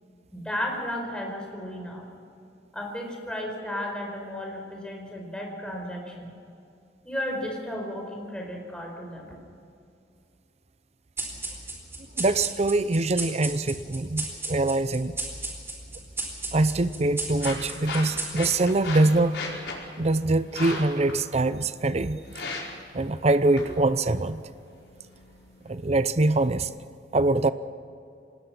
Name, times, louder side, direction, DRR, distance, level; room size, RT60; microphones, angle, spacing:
voice 1, 0.3-2.1 2.7-6.3 7.0-9.4, left 1 dB, 5° left, 0 dB, 4.8 m, -34 dB
sound 1, 11.2-18.9, right 2 dB, 15° right, 4.3 m, -35 dB
voice 2, 12.2-15.1 16.5-19.4 20.0-22.2 22.9-24.4 25.7-26.7 27.1-27.5, right 2 dB, 40° right, 13 dB, 0.7 m, -23 dB
sound 2, 16.4-26.4, left 3 dB, 85° left, 5.0 m, -39 dB
25.5 x 19.5 x 6.0 m, 2.5 s
head